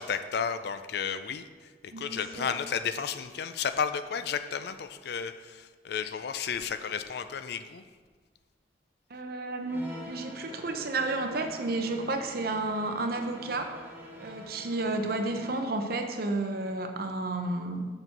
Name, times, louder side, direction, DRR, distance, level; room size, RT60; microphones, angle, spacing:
voice 1, 0.0-1.5 2.0-7.8, left 6 dB, 60° left, 10 dB, 0.4 m, -32 dB
voice 2, 1.9-2.5 9.1-13.8 14.2-17.9, right 2 dB, 55° right, 6 dB, 0.7 m, -32 dB
sound 1, 9.7-15.8, equal, 10° right, 1.0 m, -46 dB
6.7 x 4.4 x 5.9 m, 1.5 s
head